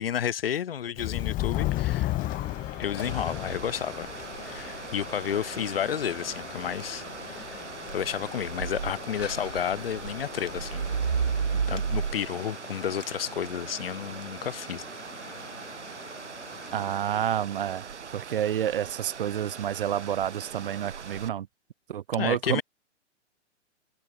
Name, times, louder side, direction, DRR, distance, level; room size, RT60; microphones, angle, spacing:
voice 1, 0.0-2.1 2.8-4.1 4.4-7.6 7.9-10.9 11.5-14.8 22.2-22.6, left 9 dB, 50° left, 2.2 m, -31 dB
Subway metro underground, 1.0-11.6, left 17 dB, 20° left, 4.1 m, -35 dB
sound 1, 1.5-17.0, left 3 dB, 80° left, 5.3 m, -45 dB
sound 2, 3.0-21.3, right 6 dB, 65° right, 1.6 m, -36 dB
voice 2, 16.7-17.9 18.1-21.5 21.9-22.6, right 10 dB, 45° right, 1.5 m, -29 dB
figure-of-eight pair, 120°, 37 cm